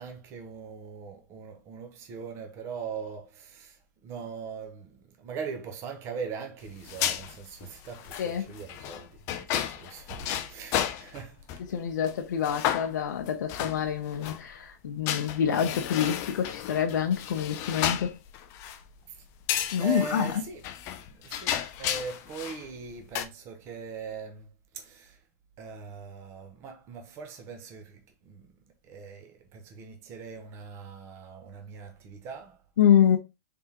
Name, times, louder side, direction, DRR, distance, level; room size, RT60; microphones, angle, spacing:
voice 1, 0.0-11.4 19.1-19.2 19.8-20.6 21.1-24.5 24.7-25.2 25.6-28.5 28.8-32.6, right 5 dB, 25° right, 0.7 m, -41 dB
sound 1, 6.7-11.7 12.1-12.2 12.4-14.4 15.1-18.9 19.5-22.6 22.9-23.2, left 11 dB, 30° left, 0.3 m, -33 dB
voice 2, 11.7-18.2 19.7-20.4 32.8-33.2, left 9 dB, 85° left, 0.6 m, -26 dB
3.5 x 3.4 x 2.8 m
supercardioid pair, 160°, 10 cm